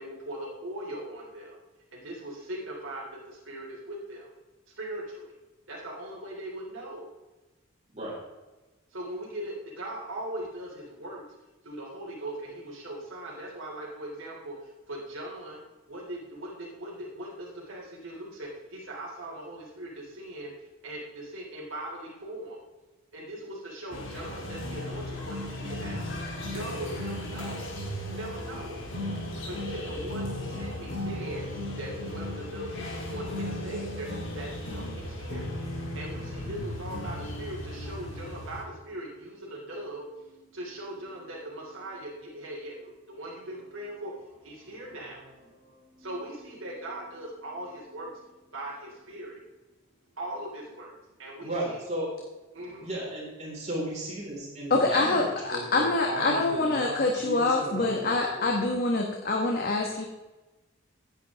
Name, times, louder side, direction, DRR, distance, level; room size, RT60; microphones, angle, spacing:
voice 1, 0.0-1.6 1.9-4.3 4.7-5.3 5.7-7.1 8.9-11.2 11.6-15.6 15.9-22.6 23.1-26.1 26.4-49.5 50.1-51.8 52.5-52.9, right 1 dB, 85° right, -4 dB, 3.1 m, -40 dB
sound 1, 23.9-38.6, left 1 dB, 70° left, 3.2 m, -36 dB
voice 2, 51.4-52.1 52.8-58.7, right 1 dB, 35° right, -4 dB, 4.5 m, -35 dB
voice 3, 54.7-60.0, left 2 dB, 50° left, 1 dB, 1.5 m, -25 dB
16.0 x 9.8 x 3.6 m, 1.1 s
head